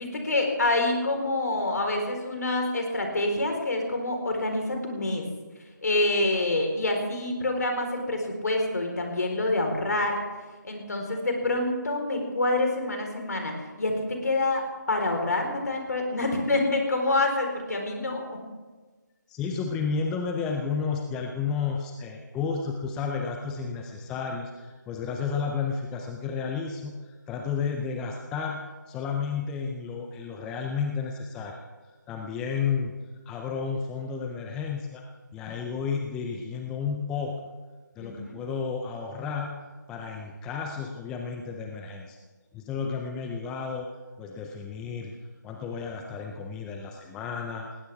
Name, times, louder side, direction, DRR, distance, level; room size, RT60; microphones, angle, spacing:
voice 1, 0.0-5.2 5.8-10.2 10.6-18.4 38.0-38.4, left 2 dB, 60° left, 3 dB, 4.1 m, -27 dB
voice 2, 19.3-31.6 31.8-32.9 33.3-35.0 35.3-37.3 38.0-39.6 39.9-42.2 42.5-43.9 44.2-45.1 45.4-47.7, left 5 dB, 5° left, 2 dB, 0.5 m, -32 dB
19.0 x 17.0 x 3.5 m, 1.3 s
figure-of-eight pair, 155°, 10 cm